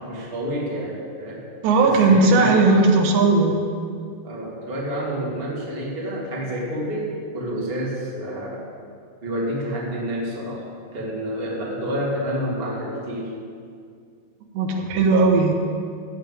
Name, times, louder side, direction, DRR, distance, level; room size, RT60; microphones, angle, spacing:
voice 1, 0.0-1.4 1.8-2.7 4.2-8.7 9.2-10.6 10.9-13.3, equal, 20° right, -5 dB, 1.8 m, -29 dB
voice 2, 1.6-3.6 14.6-15.5, right 3 dB, 90° right, 2 dB, 3.5 m, -17 dB
14.5 x 5.7 x 8.6 m, 2.2 s
omnidirectional pair, 4.9 m